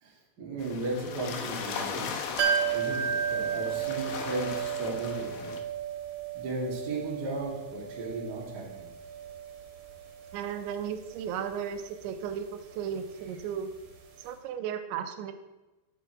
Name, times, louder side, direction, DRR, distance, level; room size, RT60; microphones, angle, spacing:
voice 1, 0.0-2.1 2.7-5.5 6.3-8.7, right 2 dB, 30° right, -3 dB, 2.0 m, -35 dB
sound 1, 0.6-5.6, left 6 dB, 75° left, 2.1 m, -38 dB
sound 2, 2.4-14.0 14.2-14.3, right 8 dB, 65° right, 3.8 m, -34 dB
voice 2, 10.3-13.7 14.2-15.3, right 8 dB, 85° right, 8 dB, 3.2 m, -35 dB
12.0 x 7.2 x 4.7 m, 1.1 s
omnidirectional pair, 5.1 m